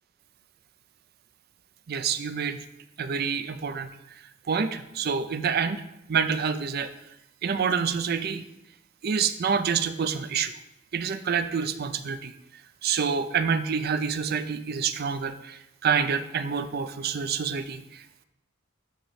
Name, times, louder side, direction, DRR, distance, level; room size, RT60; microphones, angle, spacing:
voice 1, 1.9-2.6 3.0-4.2 4.5-5.8 6.1-6.9 7.4-8.4 9.0-10.5 10.9-12.3 12.8-18.0, right 6 dB, 55° right, 10 dB, 0.4 m, -27 dB
8.9 x 3.1 x 4.7 m, 0.86 s
head